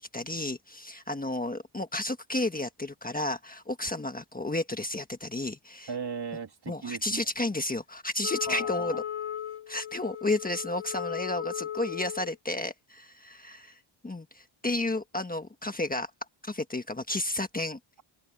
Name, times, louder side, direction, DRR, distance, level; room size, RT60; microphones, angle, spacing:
voice 1, 0.0-5.9 6.7-9.0 9.7-16.1 16.4-17.8, left 2 dB, 15° left, 1.4 m, -32 dB
voice 2, 5.9-7.2 8.5-9.0, right 5 dB, 50° right, 3.1 m, -37 dB
Wind instrument woodwind instrument, 8.2-12.4, left 10 dB, 90° left, 3.7 m, -36 dB
open air
wide cardioid pair, 155°, 49 cm